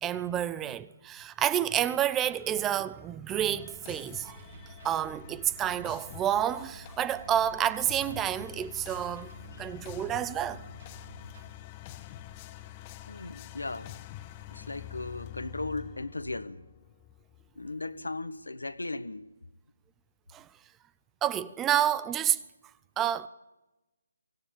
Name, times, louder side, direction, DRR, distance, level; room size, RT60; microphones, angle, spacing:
voice 1, 0.0-4.4 4.8-10.6 20.3-20.4 21.2-22.4 23.0-23.3, right 10 dB, 15° right, 0.7 m, -29 dB
sound 1, 3.3-18.0, left 14 dB, 25° left, 1.2 m, -47 dB
sound 2, 4.2-11.4, right 3 dB, 55° right, 5.6 m, -51 dB
voice 2, 13.1-14.0 14.5-16.6 17.5-19.3, left 2 dB, 80° left, 1.6 m, -37 dB
24.0 x 18.0 x 8.6 m
figure-of-eight pair, 145°, 0 cm